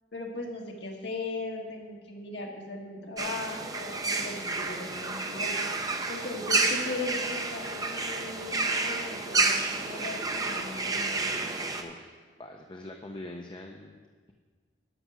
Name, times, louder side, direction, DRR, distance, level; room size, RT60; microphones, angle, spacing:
voice 1, 0.1-5.6 6.1-11.2, left 2 dB, 65° left, 0 dB, 1.6 m, -38 dB
sound 1, 3.2-11.8, right 3 dB, 20° right, 0.6 m, -30 dB
voice 2, 11.8-14.3, left 1 dB, 25° left, 3 dB, 0.6 m, -44 dB
12.0 x 6.0 x 6.0 m, 1.5 s
head